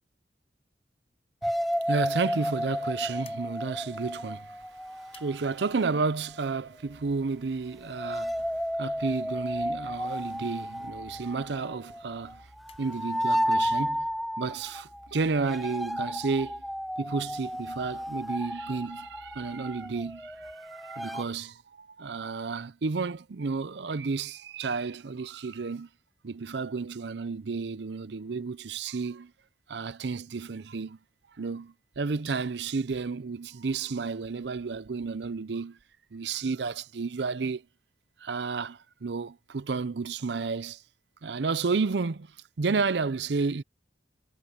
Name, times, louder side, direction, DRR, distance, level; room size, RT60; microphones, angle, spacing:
sound 1, 1.4-6.0 7.8-21.2, equal, ahead, 0.5 m, -33 dB
voice 1, 1.8-4.6 4.9-8.4 8.8-12.5 12.8-14.1 14.4-16.6 17.0-25.9 26.2-29.3 29.7-31.0 31.4-35.8 36.1-37.6 38.2-40.8 41.2-42.3 42.6-43.6, right 4 dB, 70° right, 0.6 m, -32 dB
sound 2, 3.2-13.5, left 6 dB, 35° left, 7.0 m, -63 dB
sound 3, 6.8-20.6, equal, 50° right, 4.8 m, -59 dB
head